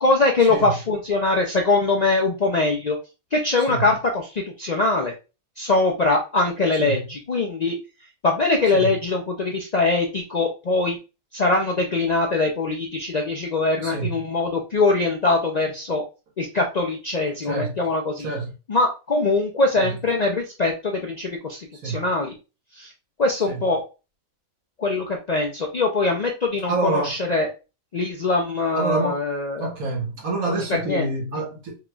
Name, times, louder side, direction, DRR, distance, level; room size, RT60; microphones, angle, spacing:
voice 1, 0.0-3.0 3.3-5.1 5.6-7.8 8.2-11.0 11.3-16.0 16.4-18.3 18.7-22.3 22.7-22.9 23.2-23.8 24.8-27.5 27.9-29.7 30.8-31.1, left 3 dB, 55° left, 0.4 m, -22 dB
voice 2, 18.2-18.5 19.8-19.9 21.8-22.0 23.5-23.6 26.7-27.1 28.8-29.2 29.6-31.8, right 3 dB, 85° right, 1.7 m, -27 dB
4.6 x 3.0 x 2.3 m
omnidirectional pair, 1.4 m